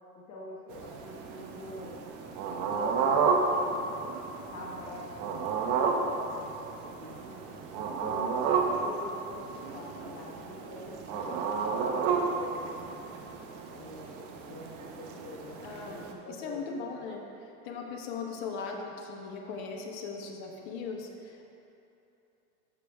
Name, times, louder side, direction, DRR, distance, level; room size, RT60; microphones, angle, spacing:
voice 1, 0.3-2.1 2.4-4.0 4.5-8.3 8.6-12.9 13.7-16.6, left 1 dB, 40° left, -5 dB, 1.6 m, -45 dB
sound 1, 0.7-16.1, right 5 dB, 40° right, 0.9 m, -32 dB
voice 2, 15.6-17.2 17.6-21.5, left 4 dB, 55° left, 1 dB, 1.2 m, -39 dB
12.0 x 6.7 x 2.3 m, 2.9 s
hypercardioid pair, 110°, 45 cm